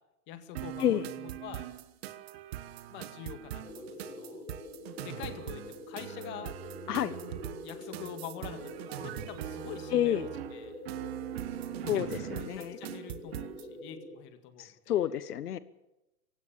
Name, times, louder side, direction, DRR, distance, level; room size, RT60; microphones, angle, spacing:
voice 1, 0.3-1.7 2.9-4.4 5.0-6.5 6.9-7.1 7.6-10.8 11.4-15.0, left 10 dB, 25° left, 8 dB, 2.0 m, -46 dB
sound 1, 0.6-13.7, right 13 dB, 45° right, 1.2 m, -41 dB
sound 2, 3.6-14.2, left 1 dB, 45° left, 5.8 m, -46 dB
voice 2, 9.9-10.3 11.9-12.8 14.6-15.6, left 11 dB, 85° left, 15 dB, 1.3 m, -29 dB
26.5 x 16.5 x 7.1 m, 0.94 s
hypercardioid pair, 165°, 45 cm